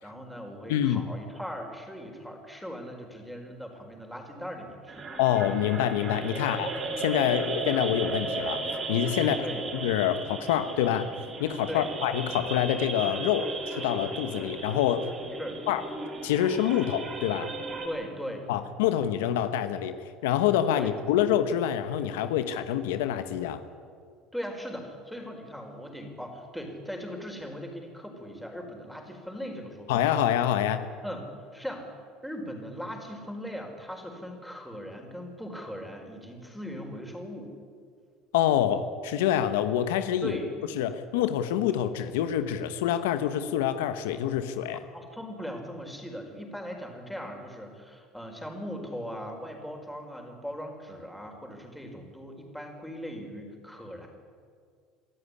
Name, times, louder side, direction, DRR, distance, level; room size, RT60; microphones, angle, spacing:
voice 1, 0.0-5.1 7.3-7.5 9.2-9.6 11.7-11.9 15.4-15.6 17.8-18.5 20.7-20.9 24.3-30.0 31.0-31.2 31.5-31.9 32.2-37.5 40.2-40.5 44.9-54.1, equal, ahead, 2 dB, 4.9 m, -39 dB
voice 2, 0.7-1.0 5.2-6.7 7.0-8.6 8.9-9.4 9.8-11.1 11.4-15.1 15.7-15.8 16.2-17.5 18.5-20.0 20.2-23.6 29.9-30.9 38.3-40.4 40.8-44.8, left 10 dB, 90° left, 10 dB, 1.2 m, -26 dB
sound 1, 4.9-17.9, right 3 dB, 35° right, 6.3 m, -35 dB
25.0 x 13.5 x 10.0 m, 2.1 s
supercardioid pair, 100°, 0 cm